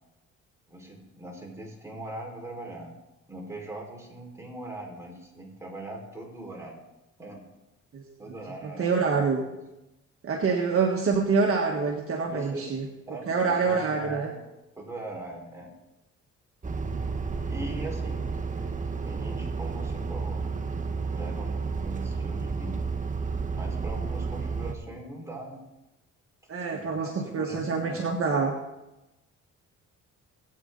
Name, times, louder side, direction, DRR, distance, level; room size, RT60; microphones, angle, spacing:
voice 1, 0.7-2.9 3.3-6.8 7.2-7.4 8.2-8.9 9.5-9.6 12.2-12.6 13.1-14.3 14.7-15.7 17.5-18.3 19.0-20.5 21.1-22.8 23.6-25.6 26.7-28.1, right 2 dB, 10° right, -2 dB, 5.0 m, -40 dB
voice 2, 8.6-9.4 10.2-12.9 13.3-14.3 26.5-28.5, right 5 dB, 50° right, 1 dB, 1.6 m, -26 dB
sound 1, 16.6-24.7, right 4 dB, 25° right, 1.1 m, -31 dB
20.0 x 8.8 x 4.0 m, 0.98 s
cardioid pair, 90°, 30 cm